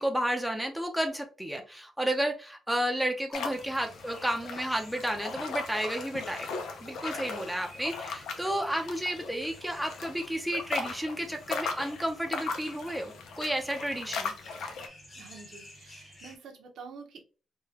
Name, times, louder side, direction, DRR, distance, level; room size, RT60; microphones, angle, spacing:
voice 1, 0.0-6.5 6.8-14.3, right 1 dB, ahead, 3 dB, 0.6 m, -32 dB
sound 1, 3.3-14.9, left 4 dB, 90° left, 0.6 m, -38 dB
sound 2, 3.5-16.4, left 1 dB, 30° left, 1.8 m, -54 dB
voice 2, 15.2-17.2, right 5 dB, 85° right, 2 dB, 0.9 m, -48 dB
3.7 x 2.4 x 2.9 m, 0.36 s
cardioid pair, 110°, 0 cm